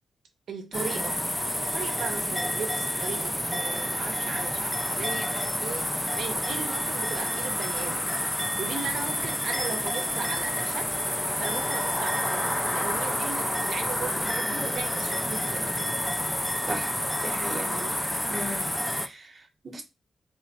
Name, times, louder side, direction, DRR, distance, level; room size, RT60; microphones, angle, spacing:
voice 1, 0.5-8.1 8.6-15.9 17.7-18.1, right 5 dB, 80° right, 0.5 m, -37 dB
sound 1, 0.7-19.1, left 1 dB, 5° left, 0.3 m, -29 dB
voice 2, 17.2-17.8 18.3-19.8, right 1 dB, 35° right, 0.8 m, -37 dB
3.3 x 2.1 x 4.0 m
wide cardioid pair, 125°, 0 cm